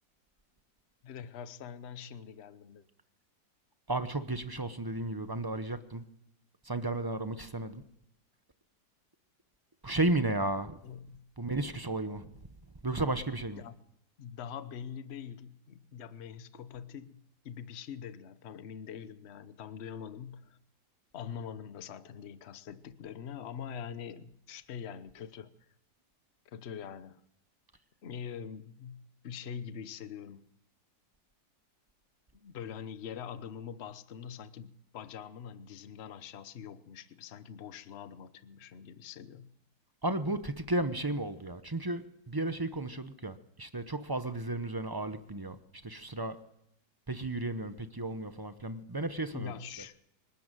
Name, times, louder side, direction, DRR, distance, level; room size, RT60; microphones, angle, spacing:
voice 1, 1.0-2.8 10.8-11.2 13.6-13.7 14.2-20.6 21.1-25.5 26.5-27.2 28.0-30.5 32.3-39.5 49.3-49.9, left 7 dB, 45° left, 0.9 m, -44 dB
voice 2, 3.9-6.0 6.6-7.8 9.8-10.8 11.4-12.3 12.8-13.6 40.0-45.6 45.8-46.4 47.1-49.5, right 2 dB, 35° right, 0.3 m, -33 dB
25.0 x 13.0 x 9.1 m
omnidirectional pair, 2.0 m